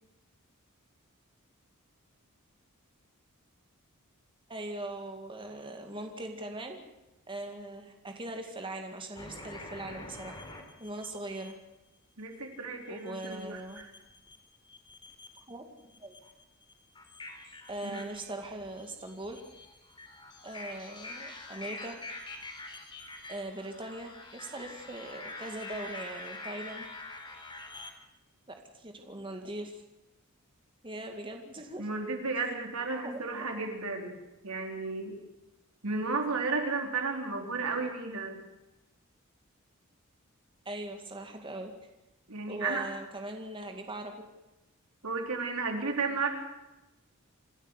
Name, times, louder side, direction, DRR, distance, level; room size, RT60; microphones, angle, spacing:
voice 1, 4.5-6.8 7.3-10.4 10.8-11.6 12.9-13.8 15.5-15.6 16.0-16.1 17.7-19.4 20.4-22.0 23.3-26.9 28.5-29.8 30.8-31.9 33.0-33.2 33.5-33.6 40.7-41.7 42.5-44.3, right 1 dB, 25° right, 4 dB, 2.1 m, -40 dB
sound 1, 9.1-11.5 13.1-14.4 14.7-15.5 15.9-27.9, left 2 dB, 20° left, 3.6 m, -46 dB
voice 2, 12.2-13.9 17.8-18.0 31.8-34.2 34.4-35.2 35.8-38.4 42.3-42.9 45.0-46.3, right 4 dB, 85° right, 3 dB, 4.0 m, -33 dB
27.0 x 13.5 x 8.2 m, 0.97 s
head